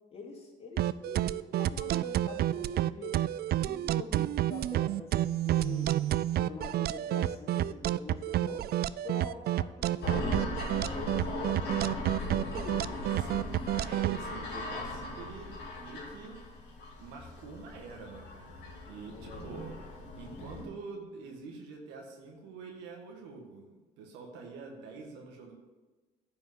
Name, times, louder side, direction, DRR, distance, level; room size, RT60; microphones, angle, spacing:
voice 1, 0.1-3.2 3.5-5.9 6.3-8.7 9.0-10.4 10.8-12.9 19.1-19.5, left 3 dB, 35° left, -1 dB, 2.7 m, -45 dB
sound 1, 0.8-14.2, right 13 dB, 60° right, 0.4 m, -29 dB
sound 2, 10.0-20.6, left 2 dB, 65° left, 2.7 m, -39 dB
voice 2, 10.7-11.1 13.2-16.4 17.0-25.5, right 4 dB, 90° right, 1 dB, 1.6 m, -46 dB
10.0 x 5.3 x 8.0 m, 1.2 s
supercardioid pair, 80°, 18 cm